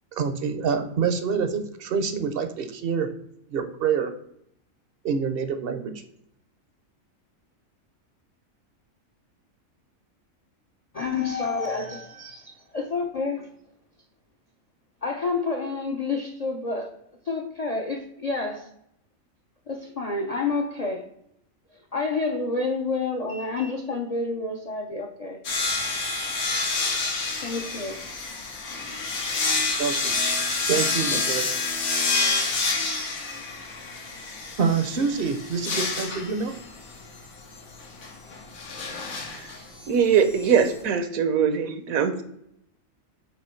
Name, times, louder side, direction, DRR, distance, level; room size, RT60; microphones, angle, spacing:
voice 1, 0.1-3.1 3.5-4.1 5.0-6.0 29.8-30.2 30.7-31.5 34.6-36.6, right 6 dB, 55° right, 0.7 m, -26 dB
voice 2, 10.9-13.5 15.0-16.9 17.3-18.7 19.7-21.1 21.9-25.4 27.4-28.1, left 3 dB, 50° left, 0.4 m, -29 dB
sound 1, 25.4-40.8, left 3 dB, 85° left, 1.7 m, -28 dB
voice 3, 39.0-39.5 39.9-42.2, right 7 dB, 80° right, 1.2 m, -22 dB
7.7 x 3.0 x 4.3 m
omnidirectional pair, 1.4 m